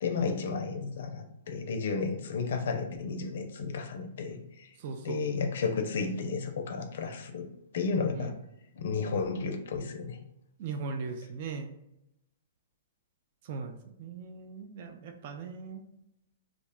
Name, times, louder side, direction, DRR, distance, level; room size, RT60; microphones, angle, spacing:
voice 1, 0.0-4.7 5.0-7.5 7.7-8.3 8.8-10.2, left 4 dB, 65° left, 5 dB, 0.4 m, -32 dB
voice 2, 4.8-5.3 8.1-8.3 10.6-11.7 13.4-15.8, right 4 dB, 45° right, 5 dB, 0.3 m, -39 dB
2.4 x 2.0 x 3.5 m, 0.82 s
hypercardioid pair, 155°, 0 cm